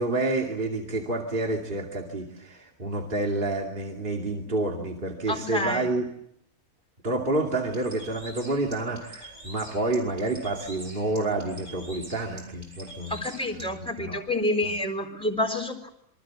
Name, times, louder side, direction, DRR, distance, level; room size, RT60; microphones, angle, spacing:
voice 1, 0.0-6.1 7.0-13.2 13.5-14.2 14.6-14.7, right 2 dB, 35° right, 1 dB, 2.8 m, -29 dB
voice 2, 5.3-5.8 13.1-15.9, left 1 dB, 5° left, 3 dB, 4.1 m, -28 dB
Bird, 7.6-13.7, right 1 dB, 85° right, 7.1 m, -46 dB
27.5 x 24.0 x 7.6 m, 0.74 s
omnidirectional pair, 1.6 m